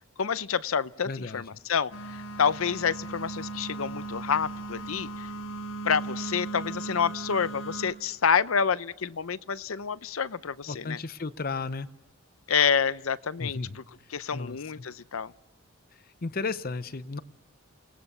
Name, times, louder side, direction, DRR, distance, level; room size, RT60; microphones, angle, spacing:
voice 1, 0.2-1.9 2.4-5.3 5.8-11.0 12.5-13.8 14.1-15.3, left 6 dB, 90° left, 16 dB, 0.7 m, -28 dB
voice 2, 1.1-1.4 10.7-11.9 13.4-13.8 14.3-14.9 16.2-17.2, left 4 dB, 45° left, 14 dB, 0.7 m, -34 dB
sound 1, 1.9-7.9, right 2 dB, 70° left, 4.4 m, -37 dB
28.5 x 19.0 x 6.8 m, 1.1 s
head